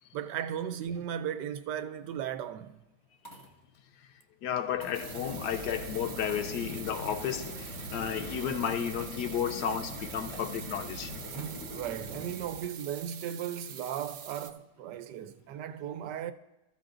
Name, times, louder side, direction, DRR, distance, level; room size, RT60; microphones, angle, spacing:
voice 1, 0.1-2.8 11.3-16.3, right 9 dB, 85° right, 1.3 m, -36 dB
sound 1, 1.6-1.9 2.9-3.8 4.8-5.5 6.2-7.0 7.7-7.8 9.9-11.8 13.0-13.4, equal, 15° left, 1.7 m, -53 dB
voice 2, 4.4-11.1, left 8 dB, 85° left, 1.2 m, -33 dB
sound 2, 4.7-12.7, left 1 dB, 50° left, 3.9 m, -43 dB
sound 3, 4.9-14.5, right 8 dB, 65° right, 1.1 m, -45 dB
26.5 x 13.5 x 2.6 m
omnidirectional pair, 1.8 m